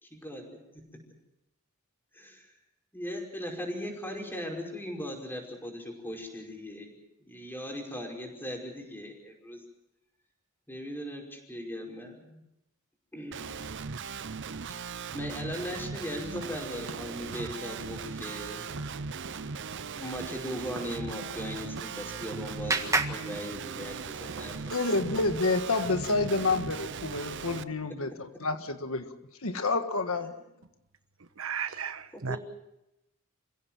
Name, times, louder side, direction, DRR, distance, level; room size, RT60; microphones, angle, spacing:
voice 1, 0.0-0.8 2.1-2.5 2.9-9.6 10.7-12.4 13.1-13.5 15.1-18.7 20.0-24.9 32.3-32.4, equal, 10° left, 5.3 m, -39 dB
Guitar, 13.3-27.6, right 5 dB, 55° right, 0.7 m, -38 dB
Tap, 16.2-19.9 20.2-24.6, right 2 dB, 90° right, 2.6 m, -47 dB
Clapping, 21.6-24.2, right 3 dB, 15° right, 1.7 m, -33 dB
voice 2, 24.7-28.1 28.4-29.1 29.4-30.3, left 3 dB, 75° left, 1.6 m, -28 dB
voice 3, 31.2-32.4, right 6 dB, 75° right, 1.2 m, -35 dB
28.0 x 16.5 x 7.5 m
head